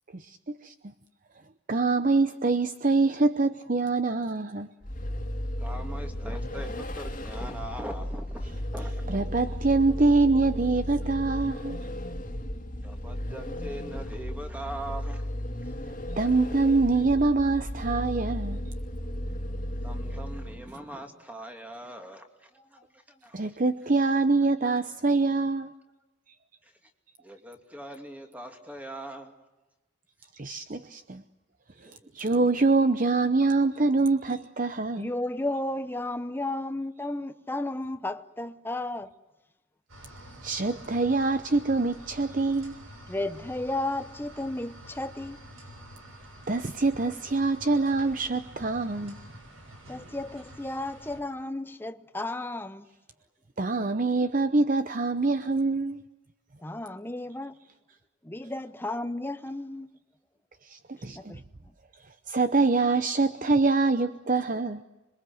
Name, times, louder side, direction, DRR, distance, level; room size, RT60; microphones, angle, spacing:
voice 1, 0.1-0.7 1.7-4.7 9.1-11.8 16.2-18.6 23.3-25.7 30.3-31.2 31.8-35.1 40.4-42.8 46.5-49.2 53.6-56.0 60.6-61.4 62.3-64.8, right 3 dB, 40° right, 0.8 m, -25 dB
Vehicle, 4.8-20.8, equal, 40° left, 2.2 m, -34 dB
voice 2, 5.6-9.2 12.8-15.4 15.6-15.7 19.8-23.6 26.6-26.9 27.2-29.3 32.0-32.1, right 1 dB, 10° right, 2.7 m, -41 dB
voice 3, 34.9-39.1 43.1-45.4 49.9-52.9 56.6-57.6 58.2-60.0 61.1-61.4, left 2 dB, 10° left, 0.8 m, -33 dB
sound 1, 39.9-51.2, equal, 85° right, 7.5 m, -48 dB
26.5 x 23.0 x 7.9 m
head